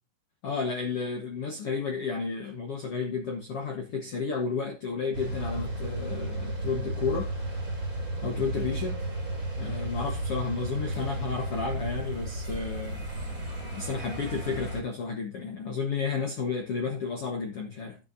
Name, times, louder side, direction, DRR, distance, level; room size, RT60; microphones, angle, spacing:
voice 1, 0.4-7.3 8.2-9.0 9.6-13.0 13.7-18.0, left 5 dB, 60° left, 1.5 m, -32 dB
sound 1, 5.1-14.8, right 1 dB, 25° right, 2.7 m, -33 dB
12.5 x 8.7 x 2.7 m
omnidirectional pair, 4.5 m